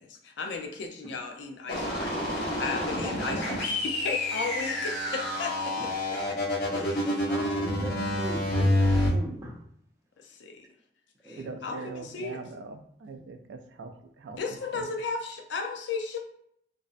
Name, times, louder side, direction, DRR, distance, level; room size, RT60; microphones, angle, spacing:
voice 1, 0.0-5.7 6.1-7.2 10.2-10.6 11.2-12.4 14.3-16.2, left 4 dB, 85° left, 4 dB, 0.4 m, -35 dB
sound 1, 1.7-9.1, left 1 dB, 60° left, 0.9 m, -28 dB
voice 2, 6.7-9.5 11.2-11.5, equal, 15° right, -3 dB, 0.5 m, -40 dB
voice 3, 11.4-13.9 14.2-14.9, right 3 dB, 85° right, 5 dB, 0.3 m, -42 dB
2.5 x 2.0 x 2.4 m, 0.70 s
head